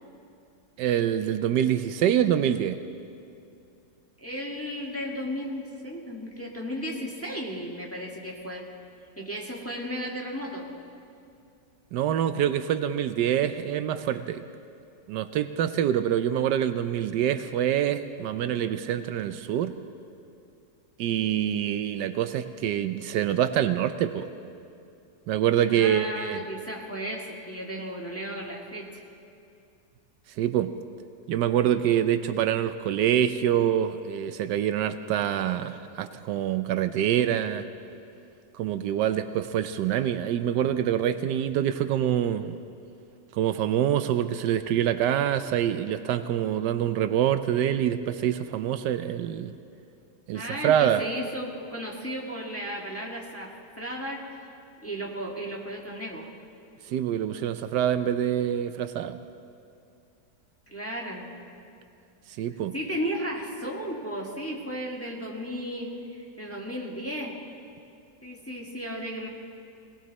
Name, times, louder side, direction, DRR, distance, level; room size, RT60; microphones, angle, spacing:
voice 1, 0.8-2.8 11.9-14.4 15.1-19.7 21.0-24.3 25.3-26.4 30.4-30.7 31.3-37.7 38.5-42.6 43.3-49.5 50.3-51.0 56.9-59.2 62.4-62.7, right 10 dB, 80° right, 11 dB, 1.2 m, -25 dB
voice 2, 4.2-8.7 9.2-10.7 25.6-29.0 50.3-54.3 54.8-56.3 60.7-61.3 62.7-67.4 68.2-69.3, equal, 10° left, -3 dB, 1.6 m, -34 dB
19.0 x 19.0 x 4.1 m, 2.6 s
omnidirectional pair, 1.9 m